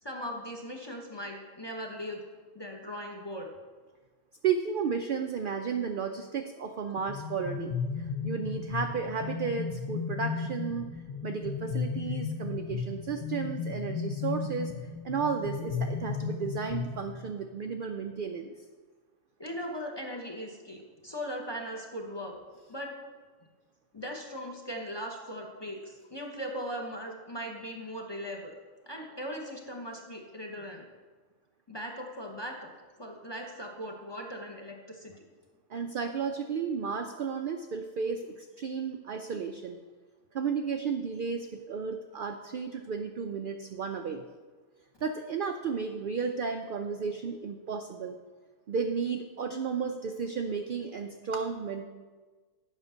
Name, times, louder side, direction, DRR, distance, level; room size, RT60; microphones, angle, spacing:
voice 1, 0.0-2.2 2.5-3.5 19.4-22.3 22.7-22.9 23.9-28.5 28.9-30.8 31.7-32.7 33.0-35.1, equal, 25° left, 1 dB, 0.7 m, -39 dB
voice 2, 4.4-10.9 11.2-14.7 15.0-18.5 35.7-39.8 40.3-44.2 45.0-48.2 48.7-51.9, right 6 dB, 75° right, 6 dB, 0.4 m, -33 dB
sound 1, 7.0-17.4, left 5 dB, 60° left, 0.3 m, -35 dB
8.2 x 5.7 x 5.5 m, 1.4 s
omnidirectional pair, 1.4 m